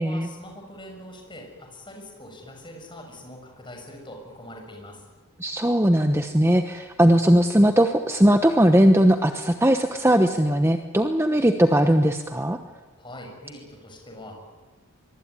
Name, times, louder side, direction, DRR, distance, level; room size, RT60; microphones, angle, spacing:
voice 1, 0.0-5.0 13.0-14.3, left 1 dB, 20° left, 2 dB, 6.8 m, -42 dB
voice 2, 5.4-12.6, equal, 10° right, 6 dB, 1.0 m, -19 dB
24.0 x 23.5 x 9.8 m, 1.2 s
head